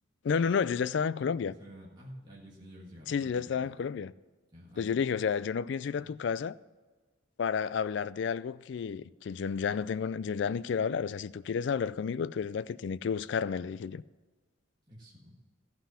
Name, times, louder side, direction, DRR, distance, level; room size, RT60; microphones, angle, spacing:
voice 1, 0.2-1.5 3.1-4.1 4.8-6.5 7.4-14.0, left 6 dB, 60° left, 0.3 m, -31 dB
voice 2, 1.4-3.9 4.5-5.1 5.8-6.1 14.9-15.4, equal, 20° right, 1.7 m, -50 dB
14.0 x 5.8 x 5.6 m
head